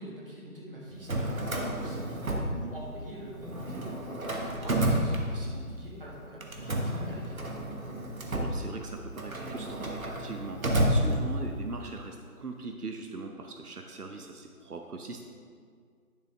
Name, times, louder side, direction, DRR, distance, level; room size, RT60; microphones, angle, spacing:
voice 1, 0.0-7.4 11.0-11.3, right 1 dB, 40° right, -4 dB, 1.8 m, -44 dB
Drawer open or close, 0.9-3.1 3.4-5.8 6.4-11.7, right 1 dB, 65° right, 1.2 m, -31 dB
voice 2, 8.1-15.2, right 3 dB, 85° right, 4 dB, 0.8 m, -41 dB
10.5 x 5.7 x 3.4 m, 2.1 s
figure-of-eight pair, 165°, 44 cm